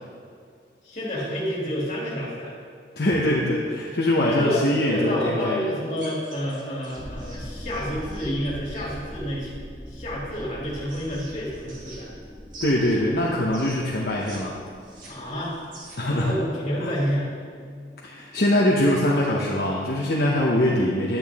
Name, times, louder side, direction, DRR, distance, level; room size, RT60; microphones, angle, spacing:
voice 1, 0.8-2.5 4.2-9.5 9.9-12.1 15.1-15.6 16.1-17.3, equal, 40° left, -6 dB, 2.6 m, -29 dB
voice 2, 3.0-5.6 12.6-14.5 16.0-16.3 16.8-16.9 18.0-21.2, left 1 dB, 65° left, -4 dB, 0.9 m, -23 dB
sound 1, 5.9-8.9 10.4-12.2 12.5-14.4 14.7-16.2, right 2 dB, 50° right, 2.2 m, -45 dB
sound 2, 7.0-20.3, equal, ahead, 0.7 m, -43 dB
10.5 x 8.6 x 3.6 m, 2.2 s
head